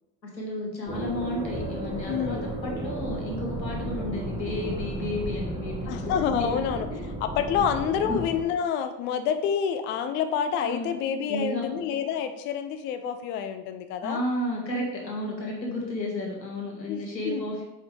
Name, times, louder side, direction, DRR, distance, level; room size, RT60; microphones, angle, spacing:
voice 1, 0.3-6.1 6.4-6.5 8.1-8.2 10.6-10.9 11.3-11.6 14.0-17.6, left 1 dB, 90° left, -1 dB, 1.6 m, -32 dB
sound 1, 0.8-8.4, right 1 dB, 15° right, 2.4 m, -33 dB
voice 2, 2.1-2.5 5.9-6.9 7.2-14.2 16.9-17.4, left 7 dB, 25° left, 9 dB, 0.3 m, -28 dB
6.6 x 5.3 x 3.3 m, 1.0 s
figure-of-eight pair, 75°, 49 cm